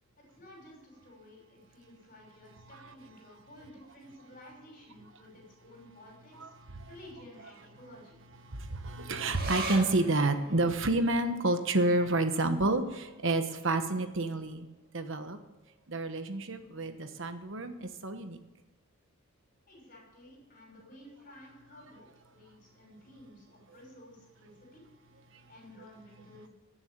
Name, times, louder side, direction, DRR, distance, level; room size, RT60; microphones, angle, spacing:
voice 1, 0.2-6.5 6.8-8.2 19.7-24.8 25.5-26.5, left 1 dB, 40° left, -1 dB, 6.1 m, -53 dB
voice 2, 6.4-6.9 8.4-14.7 14.9-15.4 15.9-18.4, right 2 dB, 55° right, 8 dB, 1.2 m, -29 dB
sound 1, 9.3-16.1 16.4-16.5 16.8-17.5 18.0-18.1, right 3 dB, 40° right, 2.1 m, -44 dB
16.5 x 7.1 x 9.0 m, 1.1 s
head